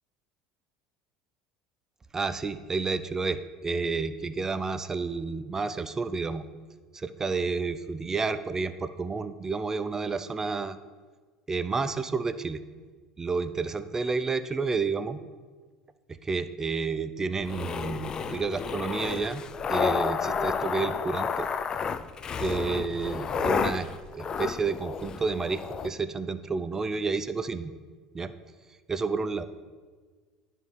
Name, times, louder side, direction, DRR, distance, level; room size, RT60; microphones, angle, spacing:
voice 1, 2.1-6.5 6.9-10.8 11.5-12.6 13.2-15.2 16.1-19.4 19.7-21.5 22.4-23.9 24.1-27.7 28.1-28.3 28.9-29.4, right 4 dB, 25° right, 12 dB, 0.4 m, -30 dB
sound 1, 17.4-25.9, left 6 dB, 35° left, 0.4 m, -31 dB
10.5 x 3.6 x 4.2 m, 1.5 s
hypercardioid pair, 70°, 2 cm